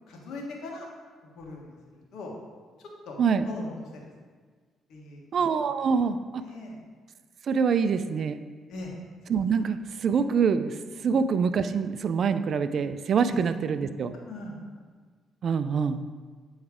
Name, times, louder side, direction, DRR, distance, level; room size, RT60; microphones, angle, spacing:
voice 1, 0.1-0.9 1.3-1.8 2.1-2.3 2.8-3.2 3.4-4.0 4.9-5.4 6.4-6.8 8.7-8.9 11.0-11.1 13.3-13.4 14.3-14.8 15.6-15.8, left 2 dB, 75° left, -1 dB, 1.4 m, -40 dB
voice 2, 5.3-6.4 7.5-8.4 9.3-14.1 15.4-16.0, right 6 dB, 60° right, 11 dB, 0.4 m, -25 dB
8.4 x 3.2 x 4.9 m, 1.5 s
supercardioid pair, 70°, 0 cm